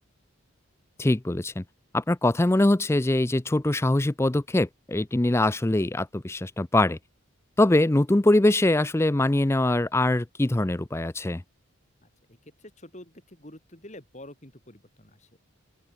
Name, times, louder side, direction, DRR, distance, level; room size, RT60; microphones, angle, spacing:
voice 1, 1.0-1.6 1.9-7.0 7.6-11.4, left 1 dB, 10° left, 0.4 m, -23 dB
voice 2, 12.0-15.4, left 1 dB, 35° left, 3.9 m, -48 dB
open air
head